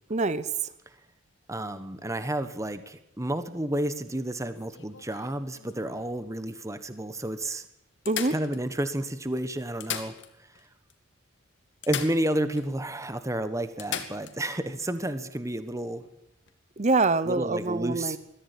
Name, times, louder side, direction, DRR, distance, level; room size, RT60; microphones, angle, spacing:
voice 1, 0.1-0.7 8.1-8.4 16.8-18.2, right 3 dB, 35° right, 15 dB, 0.9 m, -25 dB
voice 2, 1.5-7.6 8.3-10.1 11.8-16.0 17.2-18.2, right 1 dB, 15° right, 11 dB, 1.3 m, -31 dB
sound 1, 4.5-6.2 6.8-6.9 7.2-7.3 8.1-9.1 9.6-10.7 10.9-11.0 11.8-12.7 13.0-13.1 13.8-14.4 16.3-16.5, left 8 dB, 65° left, 2.3 m, -38 dB
22.5 x 15.0 x 8.5 m, 0.83 s
head